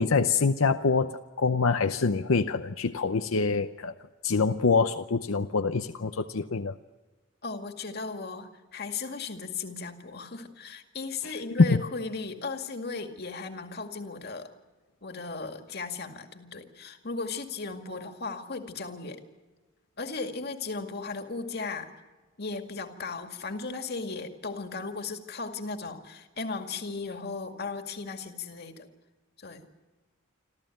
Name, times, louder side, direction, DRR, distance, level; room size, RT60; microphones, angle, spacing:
voice 1, 0.0-3.9 4.2-6.8 11.2-11.3 11.6-11.8, left 4 dB, 85° left, 8 dB, 0.7 m, -25 dB
voice 2, 7.4-14.5 15.0-19.2 20.0-21.9 22.4-28.9 29.4-29.6, left 4 dB, 50° left, 6 dB, 2.1 m, -36 dB
27.0 x 14.0 x 9.2 m, 1.2 s
head